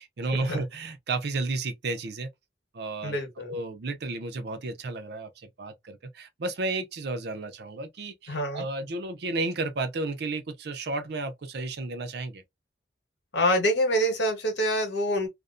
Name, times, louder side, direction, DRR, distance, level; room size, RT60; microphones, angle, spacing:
voice 1, 0.0-2.3 2.7-3.2 3.5-12.4, right 3 dB, 65° right, 0.5 m, -32 dB
voice 2, 3.0-3.6 8.3-8.6 13.3-15.3, equal, 70° left, 1.1 m, -26 dB
2.5 x 2.1 x 2.4 m
head